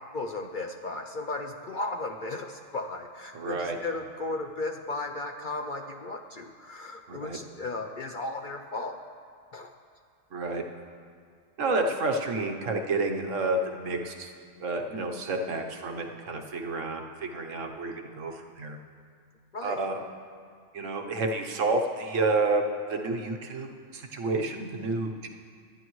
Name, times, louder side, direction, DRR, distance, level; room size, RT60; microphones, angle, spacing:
voice 1, 0.1-9.0 9.5-9.7 19.5-19.8, left 2 dB, 50° left, 4 dB, 0.6 m, -35 dB
voice 2, 3.3-3.8 7.1-7.4 10.3-10.6 11.6-14.3 14.6-18.8 19.6-20.0 20.7-22.6 22.9-25.3, right 3 dB, 75° right, 3 dB, 1.3 m, -30 dB
25.5 x 10.0 x 3.1 m, 2.1 s
omnidirectional pair, 1.4 m